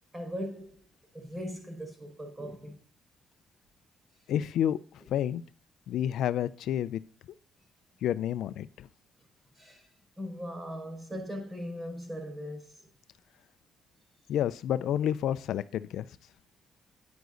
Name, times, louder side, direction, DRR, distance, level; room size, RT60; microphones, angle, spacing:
voice 1, 0.1-0.9 1.1-2.8 9.6-9.9 10.2-12.8, equal, 20° right, 4.9 m, -39 dB
voice 2, 4.3-4.8 5.1-5.4 5.9-7.0 8.0-8.9 14.3-16.1, left 10 dB, 80° left, 0.5 m, -29 dB
9.5 x 9.4 x 4.0 m
cardioid pair, 90°, 0 cm